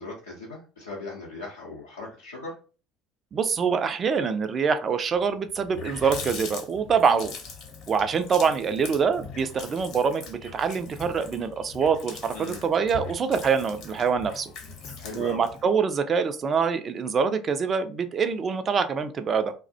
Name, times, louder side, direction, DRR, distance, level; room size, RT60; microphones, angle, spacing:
voice 1, 0.0-2.6 12.3-12.6 15.0-15.4, left 2 dB, 80° left, -5 dB, 0.5 m, -38 dB
voice 2, 3.3-7.3 7.9-14.5 15.1-19.5, right 6 dB, 35° right, 9 dB, 0.3 m, -25 dB
Water tap faucet, 5.2-5.3 5.5-15.6, left 5 dB, 55° left, 0.8 m, -41 dB
2.3 x 2.1 x 2.6 m, 0.35 s
figure-of-eight pair, 65°, 0 cm